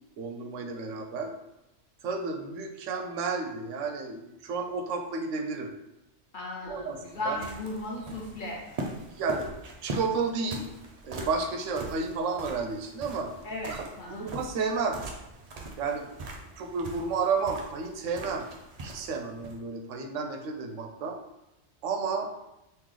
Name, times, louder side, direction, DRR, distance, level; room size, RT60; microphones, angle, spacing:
voice 1, 0.2-1.3 2.0-5.7 6.7-7.4 9.1-9.6 9.8-10.7 11.0-13.3 13.7-15.0 15.8-16.1 16.6-18.5 18.8-21.2 21.8-22.3, right 4 dB, 85° right, 4 dB, 0.9 m, -32 dB
voice 2, 6.3-8.6 13.4-14.3, left 1 dB, 50° left, -3 dB, 0.8 m, -36 dB
sound 1, 6.6-19.6, right 2 dB, 50° right, 0.4 m, -42 dB
3.1 x 3.0 x 3.7 m, 0.93 s
omnidirectional pair, 1.3 m